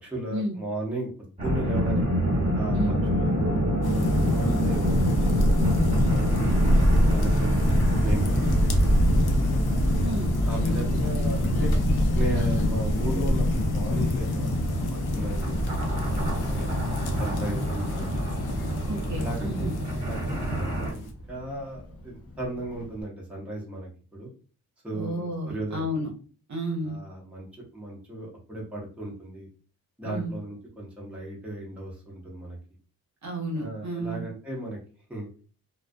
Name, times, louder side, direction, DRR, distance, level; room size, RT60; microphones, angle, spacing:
voice 1, 0.0-2.0 2.5-2.8 3.1-5.7 6.0-7.7 8.0-8.3 10.5-11.7 12.1-14.8 15.1-15.6 16.1-16.2 16.5-18.6 19.2-19.7 20.1-24.3 24.8-26.1 26.8-27.5 27.7-29.5 30.0-32.6 33.5-34.8 35.1-35.3, right 1 dB, 5° right, -3 dB, 0.5 m, -36 dB
sound 1, 1.4-20.9, equal, 20° right, 0.9 m, -27 dB
sound 2, 3.8-21.1, left 2 dB, 90° left, 0.6 m, -28 dB
Child speech kid speaking / Wind, 4.7-23.0, equal, 40° left, 0.4 m, -30 dB
voice 2, 10.0-10.3 18.9-19.7 24.9-26.1 26.5-27.0 30.0-30.3 33.2-34.3, right 1 dB, 50° right, 1 dB, 0.7 m, -31 dB
2.3 x 2.2 x 2.5 m, 0.39 s
wide cardioid pair, 180°, 37 cm